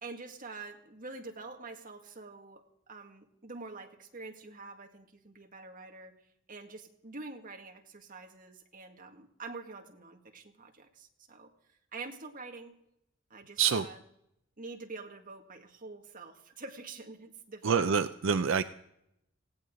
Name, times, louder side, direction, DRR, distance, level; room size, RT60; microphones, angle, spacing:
voice 1, 0.0-6.2 6.5-11.5 11.9-12.8 13.3-14.0 14.6-17.9, right 3 dB, 45° right, 2 dB, 1.9 m, -46 dB
voice 2, 17.6-18.6, right 6 dB, 75° right, 10 dB, 0.5 m, -26 dB
18.5 x 17.0 x 3.8 m, 0.79 s
head